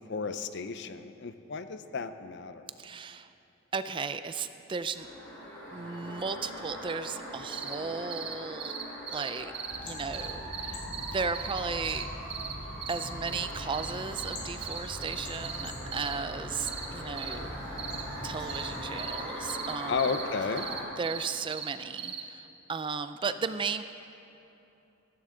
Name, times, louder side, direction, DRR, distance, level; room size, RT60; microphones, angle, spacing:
voice 1, 0.0-2.6 19.9-20.7, left 5 dB, 55° left, 11 dB, 0.6 m, -33 dB
voice 2, 2.8-3.3 3.7-5.1 5.7-8.7 9.1-9.5 9.8-12.1 12.9-17.5 18.2-20.0 21.0-23.8, right 5 dB, 25° right, 11 dB, 0.3 m, -35 dB
sound 1, 4.9-20.8, equal, 15° left, 3.9 m, -42 dB
sound 2, 7.5-7.8 8.1-8.3 8.6-9.8 10.1-12.0 12.3-12.5 12.8-13.5 13.7-13.9 14.2-14.4 14.6-15.6 15.9-16.1 16.7-16.9 17.2-17.3 17.8-18.0 18.5-18.7 19.0-19.2 19.5-19.7 20.0-20.2 20.6-21.7 22.0-22.2, right 7 dB, 55° right, 1.1 m, -37 dB
sound 3, 9.7-18.8, equal, 40° left, 2.9 m, -42 dB
16.0 x 14.5 x 3.8 m, 2.8 s
head